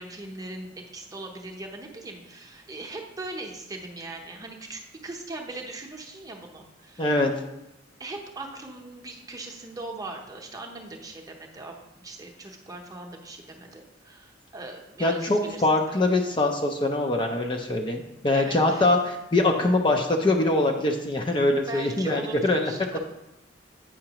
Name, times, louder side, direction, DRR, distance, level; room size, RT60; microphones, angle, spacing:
voice 1, 0.0-7.2 8.0-16.0 18.3-18.9 21.7-23.0, right 2 dB, 20° right, 1 dB, 0.8 m, -40 dB
voice 2, 7.0-7.3 15.0-23.0, left 2 dB, 25° left, 2 dB, 0.5 m, -23 dB
8.6 x 5.7 x 2.9 m, 0.90 s
head